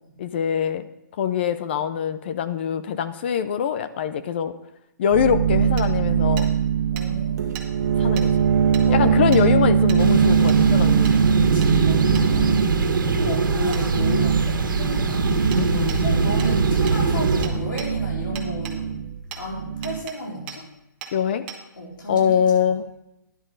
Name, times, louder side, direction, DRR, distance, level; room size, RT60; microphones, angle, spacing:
voice 1, 0.2-0.9 1.2-4.5 5.0-6.5 8.0-8.5 8.9-11.2 15.6-16.0 21.1-21.5 22.1-22.9, left 8 dB, 35° left, 12 dB, 0.5 m, -23 dB
sound 1, 5.1-12.8 13.9-14.5 15.1-15.7 15.9-20.0, right 7 dB, 55° right, 1.4 m, -22 dB
Hammer, 5.8-5.9 6.4-6.5 7.0-7.1 7.5-7.7 8.2-8.3 8.7-8.9 9.3-9.4 9.9-10.0 10.5-10.6 11.0-11.2 11.6-11.7 12.1-12.3 13.7-13.8 15.5-15.6 15.9-16.0 16.4-16.5 16.9-17.0 17.4-17.9 18.4-18.8 19.3-19.4 19.8-20.2 20.5-20.6 21.0-21.1 21.5-21.6, right 8 dB, 30° right, 1.4 m, -37 dB
voice 2, 6.9-7.6 8.8-9.2 11.4-15.5 16.0-19.0 19.4-20.7 21.7-22.3, left 1 dB, 85° left, -2 dB, 4.3 m, -33 dB
sound 2, 10.0-17.5, right 4 dB, 90° right, 1.7 m, -22 dB
12.0 x 10.5 x 3.9 m, 0.89 s
hypercardioid pair, 170°, 10 cm